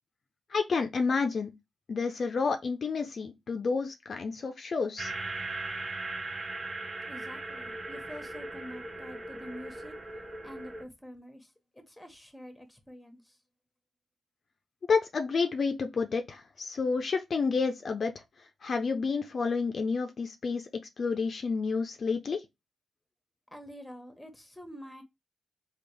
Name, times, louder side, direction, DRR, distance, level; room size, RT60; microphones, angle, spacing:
voice 1, 0.5-1.5 1.9-5.1 14.9-18.1 18.6-20.6 21.0-22.4, left 4 dB, 60° left, 0.6 m, -29 dB
sound 1, 5.0-10.8, right 2 dB, 35° right, 0.8 m, -38 dB
voice 2, 7.1-9.9 10.4-13.3 23.5-25.0, equal, 10° left, 1.2 m, -47 dB
3.4 x 2.4 x 3.3 m
supercardioid pair, 45°, 0 cm